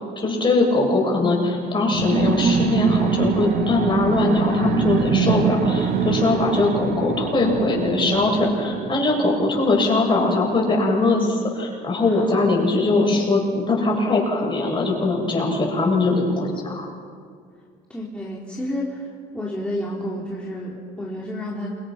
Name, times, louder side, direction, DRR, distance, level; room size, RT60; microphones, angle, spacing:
voice 1, 0.2-16.9, left 2 dB, 30° left, -2 dB, 7.9 m, -21 dB
sound 1, 1.9-10.1, right 6 dB, 65° right, 2.1 m, -24 dB
voice 2, 12.1-12.4 17.9-19.1 19.3-21.7, left 1 dB, 5° left, -5 dB, 3.8 m, -30 dB
28.5 x 25.5 x 6.0 m, 2.1 s
cardioid pair, 110°, 17 cm